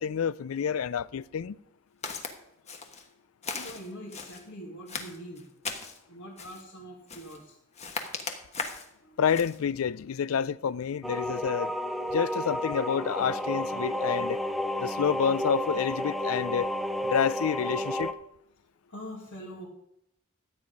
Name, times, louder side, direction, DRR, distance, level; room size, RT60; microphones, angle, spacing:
voice 1, 0.0-1.6 9.2-11.7 12.1-14.4 14.8-16.7 17.0-18.1, left 7 dB, 85° left, 0.4 m, -28 dB
Walk footsteps, 2.0-2.3 2.7-3.1 3.4-4.4 4.9-6.0 6.4-6.7 7.1-7.4 7.8-8.9 9.3-9.6, left 4 dB, 30° left, 1.2 m, -37 dB
voice 2, 3.5-5.5 6.1-7.6 9.0-9.2 18.9-19.7, equal, 65° left, 1.9 m, -43 dB
sound 1, 11.0-18.1, left 1 dB, ahead, 0.5 m, -31 dB
12.5 x 8.8 x 5.2 m
head